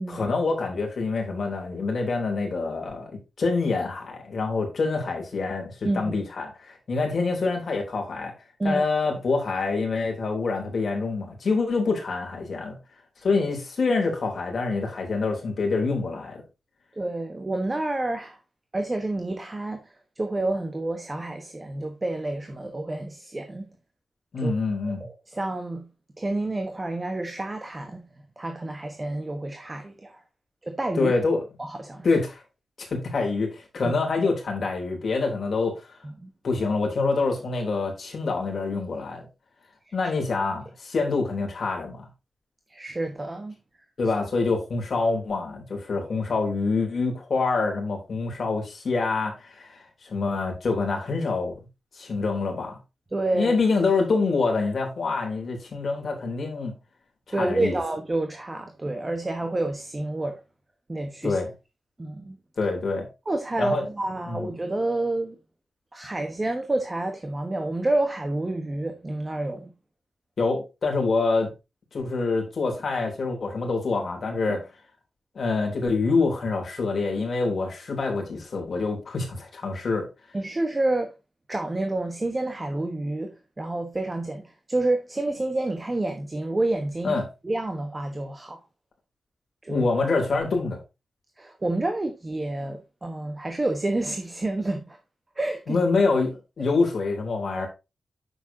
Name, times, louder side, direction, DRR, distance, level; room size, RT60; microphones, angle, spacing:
voice 1, 0.1-3.1 3.4-8.3 8.6-12.8 13.2-16.4 24.3-25.1 30.9-31.4 32.0-32.4 32.8-35.9 36.4-39.2 39.9-42.1 44.0-51.5 51.9-52.8 53.3-56.7 57.3-57.8 61.2-61.5 62.6-63.1 63.6-63.8 64.3-64.5 70.4-71.5 71.9-74.6 75.3-80.1 87.0-87.2 89.7-90.8 95.7-97.7, left 3 dB, 50° left, 3.3 m, -26 dB
voice 2, 17.0-18.4 18.7-23.7 24.4-24.5 24.8-25.9 26.2-28.0 28.4-30.2 30.6-31.1 31.6-32.2 36.0-36.3 39.9-40.1 42.7-43.6 53.1-53.6 57.3-60.4 60.9-61.4 62.0-62.4 63.3-65.4 65.9-69.7 80.3-81.1 81.5-87.2 87.4-88.6 89.6-89.9 91.4-95.0 95.4-95.8 97.6-97.7, right 2 dB, 20° right, 1.1 m, -29 dB
9.7 x 7.2 x 2.8 m
wide cardioid pair, 175°, 0 cm